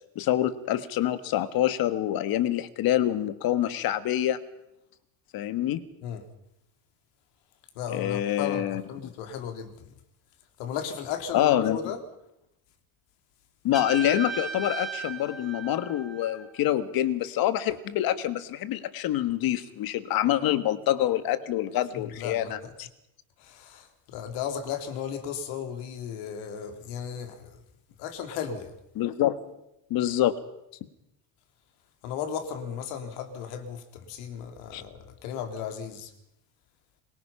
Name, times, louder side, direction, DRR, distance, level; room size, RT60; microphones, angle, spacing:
voice 1, 0.1-4.4 5.3-5.8 7.9-8.8 11.3-11.8 13.6-22.9 28.9-29.4 29.9-30.4 34.7-34.8, left 12 dB, 45° left, 1.6 m, -26 dB
voice 2, 7.8-9.9 10.6-12.1 21.9-22.7 23.4-27.5 28.0-28.7 32.0-36.1, left 7 dB, 70° left, 3.6 m, -35 dB
Trumpet, 13.7-16.6, right 6 dB, ahead, 3.3 m, -37 dB
24.5 x 23.0 x 5.8 m
cardioid pair, 160°, 50 cm